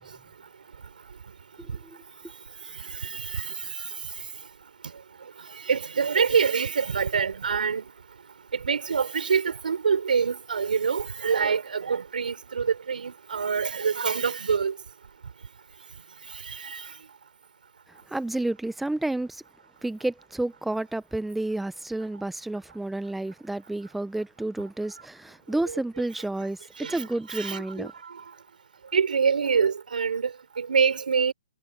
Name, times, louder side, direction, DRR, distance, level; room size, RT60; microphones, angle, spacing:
voice 1, 1.6-2.0 18.1-19.4 19.8-27.9, right 2 dB, 5° right, 0.7 m, -30 dB
voice 2, 3.0-3.5 5.7-7.8 8.6-14.7 16.5-16.8 25.6-25.8 26.8-27.9 28.9-31.3, right 6 dB, 75° right, 5.0 m, -25 dB
hypercardioid pair, 150°, 5 cm